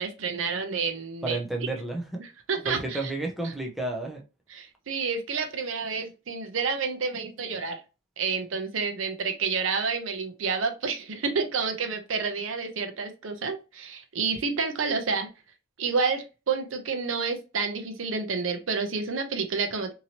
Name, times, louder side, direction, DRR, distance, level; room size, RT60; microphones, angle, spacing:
voice 1, 0.0-1.4 2.5-3.1 4.5-7.8 8.2-15.3 15.8-19.9, right 5 dB, 75° right, 0.6 m, -29 dB
voice 2, 1.2-2.2 2.6-4.2, right 2 dB, ahead, 0.6 m, -31 dB
2.8 x 2.7 x 2.8 m
head